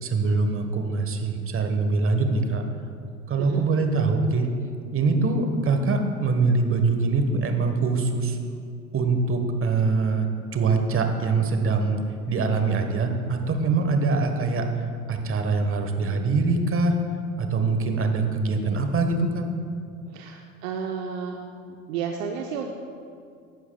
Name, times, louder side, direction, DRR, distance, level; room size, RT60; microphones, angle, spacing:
voice 1, 0.0-2.6 3.3-4.5 4.9-8.4 8.9-12.0 12.3-14.7 15.1-17.0 17.4-19.5, right 3 dB, 30° right, 5 dB, 1.4 m, -23 dB
voice 2, 20.1-21.4 21.9-22.7, right 7 dB, 65° right, 2 dB, 0.9 m, -31 dB
15.0 x 11.0 x 2.4 m, 2.3 s
figure-of-eight pair, 70°, 43 cm